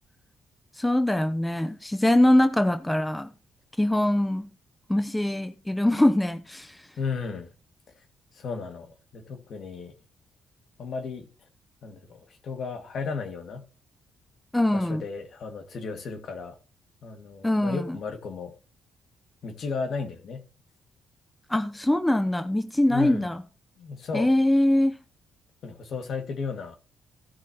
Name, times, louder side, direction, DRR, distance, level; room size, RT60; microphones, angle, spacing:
voice 1, 0.8-3.3 3.8-4.5 4.9-6.8 14.5-15.0 17.4-18.0 21.5-23.4 24.1-25.0, left 1 dB, 10° left, 0.8 m, -23 dB
voice 2, 7.0-7.5 8.3-9.9 10.8-11.3 11.8-13.6 14.7-16.6 17.0-18.5 19.4-20.4 22.9-23.3 23.8-24.3 25.6-26.8, left 5 dB, 60° left, 2.1 m, -34 dB
17.5 x 6.3 x 3.0 m
cardioid pair, 90°, 0 cm